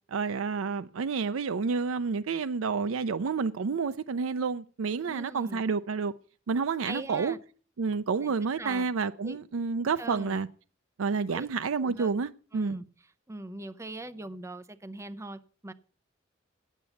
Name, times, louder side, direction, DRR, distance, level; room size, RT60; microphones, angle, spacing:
voice 1, 0.1-6.1 6.5-7.3 7.8-10.5 11.0-12.8, right 5 dB, 80° right, 0.5 m, -29 dB
voice 2, 5.0-5.6 6.8-7.4 8.2-8.9 9.2-9.4 10.0-10.4 11.3-11.5 11.8-12.1 12.5-12.8 13.3-15.7, right 2 dB, 15° right, 0.6 m, -41 dB
9.4 x 8.2 x 7.0 m
head